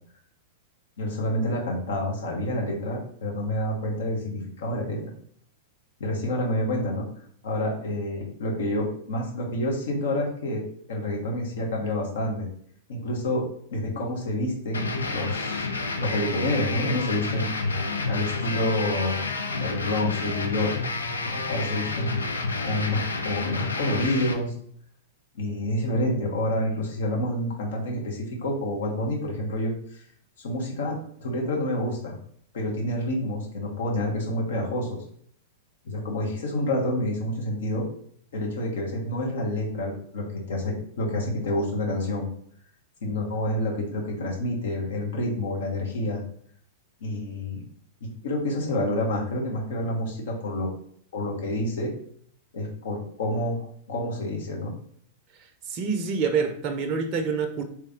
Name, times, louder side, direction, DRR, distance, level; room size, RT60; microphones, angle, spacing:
voice 1, 1.0-5.0 6.0-7.1 7.4-12.5 12.9-15.7 16.0-17.5 18.1-19.3 19.6-20.7 21.2-22.1 22.6-24.5 25.3-30.0 30.4-32.2 32.5-35.0 35.8-37.8 38.3-42.3 43.0-46.2 47.0-47.6 48.0-50.7 51.1-51.9 52.5-54.7, left 1 dB, 65° left, 1.3 m, -28 dB
sound 1, 14.7-24.3, left 3 dB, 85° left, 0.5 m, -30 dB
voice 2, 55.7-57.6, right 5 dB, 40° right, 0.5 m, -26 dB
3.3 x 2.9 x 3.6 m
figure-of-eight pair, 100°, 0 cm